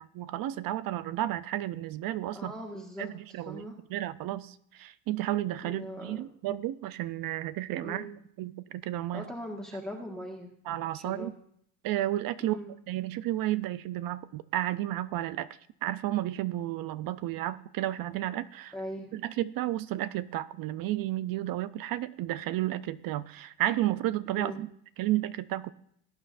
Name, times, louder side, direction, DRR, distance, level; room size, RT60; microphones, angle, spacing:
voice 1, 0.0-2.5 3.0-8.1 8.4-9.2 10.7-11.3 11.8-12.6 12.9-15.5 15.8-18.7 19.1-24.7 25.0-25.7, right 14 dB, 50° right, 15 dB, 0.5 m, -32 dB
voice 2, 2.3-3.1 3.4-3.7 5.7-6.2 7.8-8.1 9.1-10.6 10.9-11.3 12.4-12.7 18.7-19.1 24.4-24.6, equal, ahead, -1 dB, 1.5 m, -40 dB
18.5 x 8.8 x 2.5 m, 0.67 s
cardioid pair, 115°, 44 cm